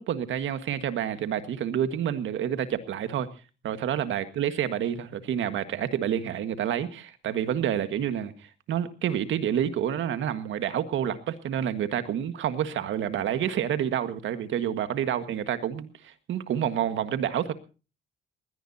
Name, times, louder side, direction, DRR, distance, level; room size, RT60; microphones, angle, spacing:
voice 1, 0.0-3.3 3.6-17.5, right 9 dB, 75° right, 1.7 m, -28 dB
20.5 x 17.5 x 2.8 m
cardioid pair, 90°, 20 cm